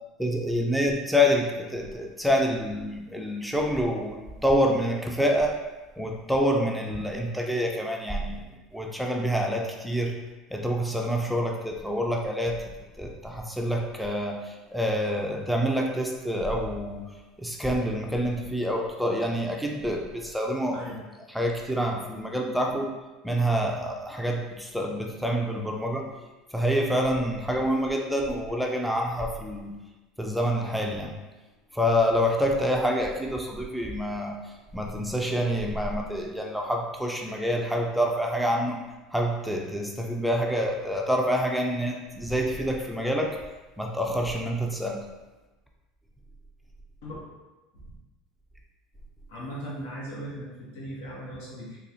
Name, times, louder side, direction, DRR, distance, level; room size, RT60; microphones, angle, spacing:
voice 1, 0.2-5.5 6.0-8.4 8.7-10.1 10.5-12.6 13.0-17.1 17.4-20.8 21.3-22.9 23.2-26.1 26.5-29.7 30.2-31.2 31.7-34.4 34.7-38.8 39.1-43.4 43.8-45.0, equal, ahead, 0 dB, 0.4 m, -27 dB
voice 2, 49.3-51.8, equal, 85° left, -5 dB, 1.2 m, -38 dB
4.1 x 2.4 x 2.7 m, 1.1 s
supercardioid pair, 120°, 0 cm